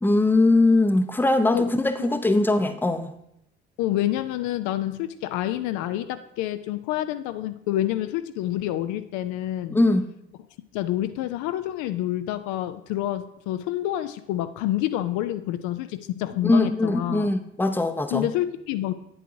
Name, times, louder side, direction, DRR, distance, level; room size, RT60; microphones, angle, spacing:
voice 1, 0.0-3.1 9.7-10.1 16.4-18.3, left 2 dB, 5° left, 8 dB, 0.6 m, -21 dB
voice 2, 3.8-9.8 10.7-17.3 18.1-18.9, left 13 dB, 65° left, 11 dB, 0.5 m, -28 dB
8.8 x 7.7 x 2.7 m, 0.76 s
hypercardioid pair, 50°, 32 cm